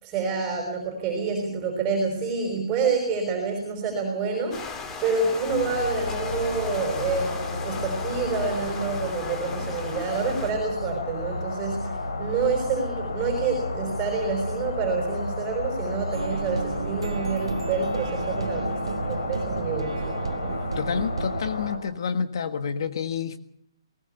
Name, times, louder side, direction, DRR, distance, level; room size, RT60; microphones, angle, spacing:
voice 1, 0.0-4.6 5.0-20.5, right 4 dB, 20° right, 2 dB, 5.4 m, -28 dB
sound 1, 4.5-10.5, left 4 dB, 15° left, 1.9 m, -37 dB
sound 2, 5.5-21.8, left 2 dB, 85° left, 5.1 m, -32 dB
sound 3, 16.1-21.4, right 5 dB, 80° right, 2.1 m, -32 dB
voice 2, 20.8-23.4, left 6 dB, 55° left, 10 dB, 1.5 m, -28 dB
21.5 x 19.5 x 7.0 m, 0.68 s
hypercardioid pair, 155°, 3 cm